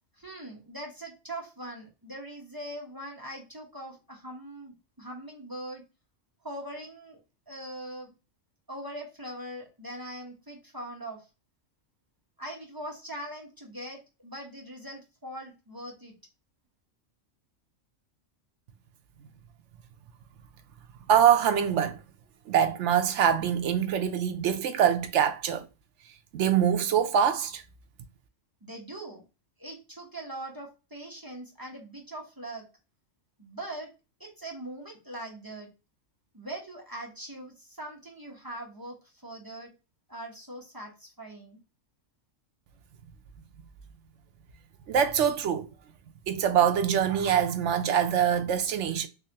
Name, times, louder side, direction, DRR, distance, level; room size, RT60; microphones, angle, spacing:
voice 1, 0.2-5.8 6.4-7.2 7.5-8.1 8.7-11.3 12.4-16.2 28.6-29.2 29.6-32.7 33.4-33.9 34.2-35.7 36.3-39.7 40.1-41.6, right 1 dB, 20° right, 0.9 m, -41 dB
voice 2, 21.1-22.0 22.5-25.6 26.3-27.6 44.9-45.7 46.3-49.1, right 8 dB, 70° right, 0.9 m, -24 dB
3.7 x 3.2 x 2.8 m
omnidirectional pair, 1.3 m